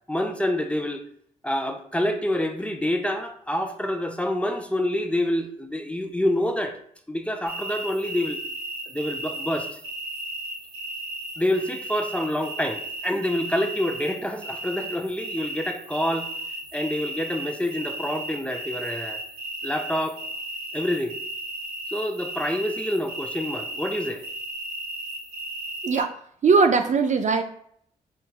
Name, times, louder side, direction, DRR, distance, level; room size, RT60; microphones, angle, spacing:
voice 1, 0.1-1.0 1.4-6.8 7.1-8.4 8.9-9.7 11.4-16.3 16.7-19.2 19.6-20.2 20.7-21.2 21.9-24.2, left 1 dB, 5° left, 5 dB, 0.7 m, -27 dB
sound 1, 7.4-26.0, right 1 dB, 85° right, 1.0 m, -35 dB
voice 2, 26.4-27.4, right 4 dB, 45° right, 7 dB, 0.4 m, -19 dB
4.6 x 3.4 x 2.3 m, 0.65 s
supercardioid pair, 45°, 17 cm